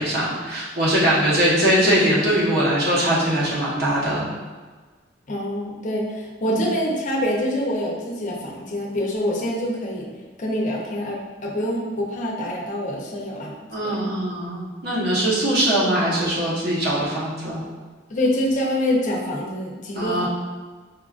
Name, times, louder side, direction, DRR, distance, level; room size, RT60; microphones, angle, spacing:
voice 1, 0.0-4.3 6.5-6.6 13.7-17.6 19.9-20.3, right 1 dB, 60° right, -6 dB, 0.9 m, -21 dB
voice 2, 5.3-10.1 10.4-13.9 18.1-20.3, equal, 45° left, -2 dB, 0.6 m, -25 dB
4.5 x 2.4 x 2.4 m, 1.4 s
head